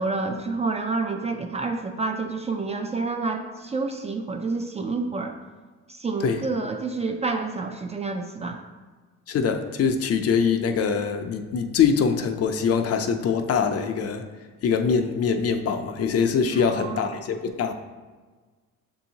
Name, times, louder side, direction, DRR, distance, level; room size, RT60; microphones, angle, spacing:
voice 1, 0.0-5.3 5.9-8.6 16.5-17.1, right 3 dB, 25° right, 5 dB, 0.3 m, -29 dB
voice 2, 9.3-14.2 14.6-17.7, left 6 dB, 55° left, 7 dB, 0.5 m, -23 dB
6.7 x 2.7 x 2.8 m, 1.4 s
cardioid pair, 90°, 30 cm